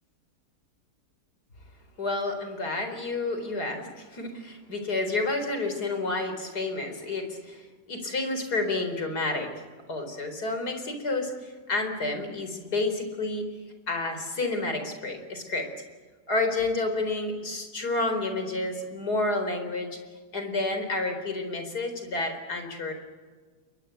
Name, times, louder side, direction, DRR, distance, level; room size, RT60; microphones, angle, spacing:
voice 1, 2.0-9.5 9.9-13.5 13.9-15.7 16.3-20.0 20.3-22.9, left 2 dB, 70° left, 6 dB, 4.8 m, -30 dB
29.5 x 23.0 x 8.1 m, 1.5 s
omnidirectional pair, 1.7 m